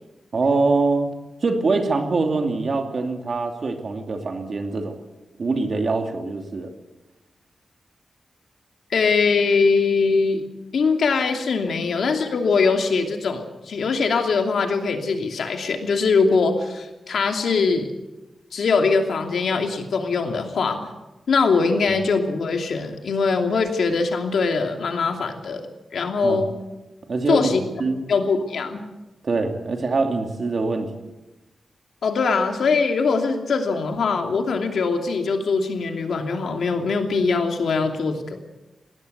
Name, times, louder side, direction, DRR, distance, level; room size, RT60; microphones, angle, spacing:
voice 1, 0.3-1.1 1.4-4.9 5.4-6.7 26.2-26.4 27.1-27.5 27.8-28.0 29.2-31.1, right 3 dB, 45° right, 4 dB, 2.7 m, -23 dB
voice 2, 8.9-10.4 10.7-17.9 18.5-20.9 21.3-25.6 25.9-26.5 27.3-27.7 28.1-28.8 32.0-38.4, left 4 dB, 80° left, 4 dB, 2.8 m, -22 dB
20.5 x 17.5 x 8.2 m, 1.0 s
wide cardioid pair, 160°, 0 cm